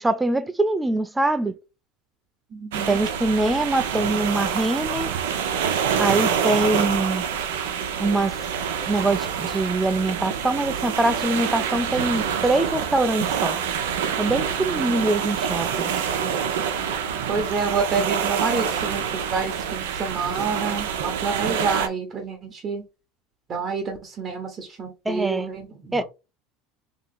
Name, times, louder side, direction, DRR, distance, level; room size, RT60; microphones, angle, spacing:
voice 1, 0.0-1.5 2.9-5.1 6.0-7.2 8.0-8.4 8.9-13.6 14.2-15.7 25.1-25.5 25.9-26.0, right 2 dB, 10° right, 0.5 m, -23 dB
voice 2, 2.5-3.0 17.3-22.8 23.5-26.0, right 5 dB, 40° right, 1.0 m, -28 dB
sound 1, 2.7-21.9, right 7 dB, 85° right, 0.6 m, -26 dB
2.9 x 2.8 x 4.0 m
supercardioid pair, 95°, 0 cm